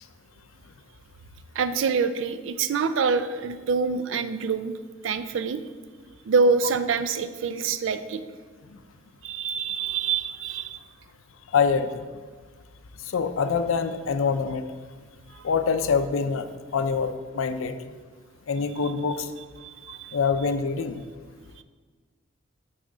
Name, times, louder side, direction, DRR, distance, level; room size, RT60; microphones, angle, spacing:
voice 1, 1.6-4.7 5.0-5.6 6.3-8.2 9.2-10.8 19.6-20.2, right 5 dB, 75° right, 11 dB, 0.4 m, -26 dB
voice 2, 11.5-12.1 13.1-14.7 15.4-17.9 18.5-19.3 20.1-21.0, left 5 dB, 90° left, 10 dB, 0.5 m, -25 dB
8.8 x 4.2 x 3.8 m, 1.5 s
head